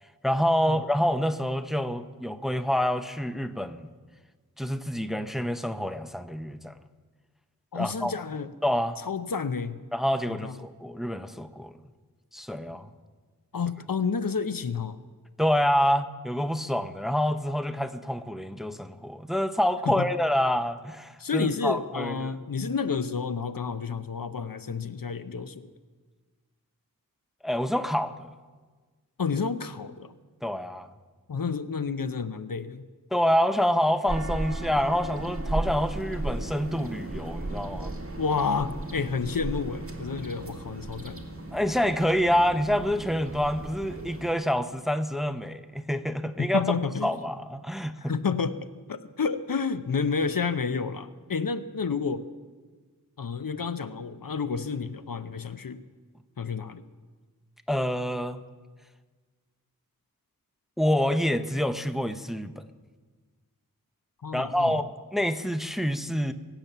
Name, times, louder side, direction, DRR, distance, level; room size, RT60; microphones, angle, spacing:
voice 1, 0.2-3.9 4.6-6.8 7.7-8.1 8.6-9.0 9.9-11.7 12.3-12.9 15.4-22.3 27.4-28.3 30.4-30.9 33.1-37.9 41.5-46.6 47.0-47.9 57.7-58.4 60.8-62.6 64.3-66.3, equal, ahead, 10 dB, 0.7 m, -27 dB
voice 2, 7.7-8.5 9.0-9.8 10.3-10.6 13.5-15.0 19.9-20.1 21.2-25.7 29.2-30.1 31.3-32.9 38.2-41.2 46.4-47.1 48.1-52.3 53.2-55.8 56.4-56.9 64.2-64.7, left 5 dB, 70° left, 12 dB, 0.7 m, -30 dB
sound 1, 34.1-44.3, right 2 dB, 40° right, 1.9 m, -35 dB
22.5 x 8.8 x 6.8 m, 1.4 s
wide cardioid pair, 55°, 36 cm